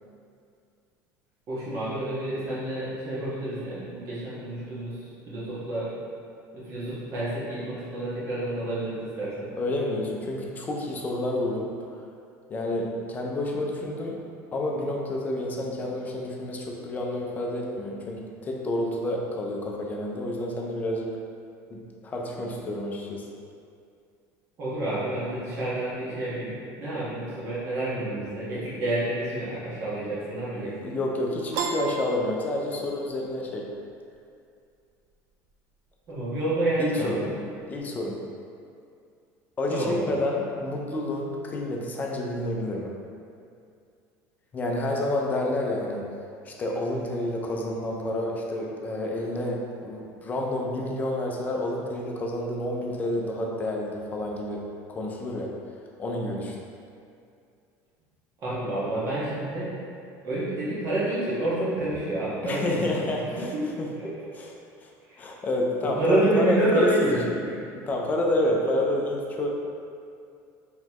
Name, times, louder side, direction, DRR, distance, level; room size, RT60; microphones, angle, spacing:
voice 1, 1.5-5.9 6.5-9.5 24.6-30.9 36.1-37.3 39.7-40.1 58.4-59.7 60.2-62.9 63.5-64.1 65.8-67.2 67.4-67.5, right 1 dB, 40° right, -9 dB, 1.3 m, -29 dB
voice 2, 9.6-11.9 12.5-14.2 14.5-21.1 21.7-23.3 30.6-33.7 36.8-37.2 37.7-38.2 39.6-42.9 44.5-46.0 46.4-54.6 54.9-55.5 56.0-56.6 62.4-63.9 64.4-64.5 64.8-64.9 65.2-67.4 67.6-69.5, left 1 dB, 25° left, -1 dB, 0.5 m, -29 dB
Piano, 31.5-33.1, right 5 dB, 70° right, 0.4 m, -32 dB
3.9 x 3.1 x 3.0 m, 2.4 s
cardioid pair, 150°, 7 cm